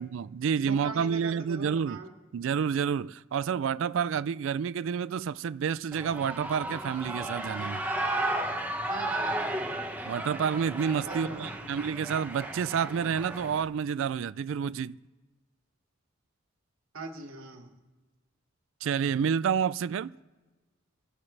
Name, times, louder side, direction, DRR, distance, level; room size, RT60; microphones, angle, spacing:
voice 1, 0.0-2.0 2.3-7.8 10.1-15.0 18.8-20.1, right 7 dB, 65° right, 0.3 m, -29 dB
voice 2, 0.6-2.1 8.9-9.7 11.1-11.7 16.9-17.7, right 3 dB, 85° right, 2.1 m, -41 dB
Shout / Cheering, 5.9-13.6, right 1 dB, 10° right, 1.2 m, -34 dB
29.0 x 11.5 x 3.3 m
head